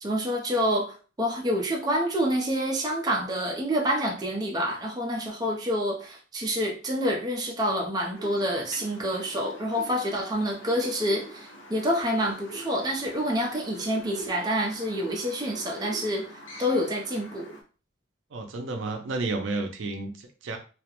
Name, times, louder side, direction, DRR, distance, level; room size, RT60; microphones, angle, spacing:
voice 1, 0.0-16.2 16.6-17.5, equal, 20° right, 0 dB, 0.5 m, -27 dB
sound 1, 8.1-17.6, equal, 85° left, 0.7 m, -44 dB
voice 2, 18.3-20.6, right 3 dB, 80° right, 4 dB, 0.5 m, -31 dB
2.3 x 2.1 x 2.9 m, 0.37 s
head